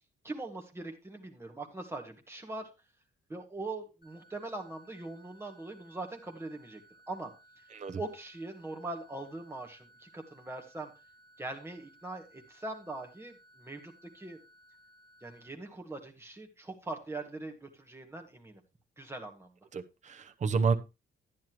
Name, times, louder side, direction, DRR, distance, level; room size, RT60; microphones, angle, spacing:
voice 1, 0.2-2.7 3.3-6.8 7.1-7.3 8.0-10.9 11.4-14.4 15.2-18.6 19.0-19.5, right 2 dB, 10° right, 3 dB, 1.8 m, -41 dB
sound 1, 4.0-15.4, right 1 dB, 45° left, 5.9 m, -61 dB
voice 2, 19.7-20.8, right 5 dB, 35° right, 9 dB, 0.8 m, -30 dB
11.0 x 10.0 x 3.0 m, 0.26 s
wide cardioid pair, 155°, 20 cm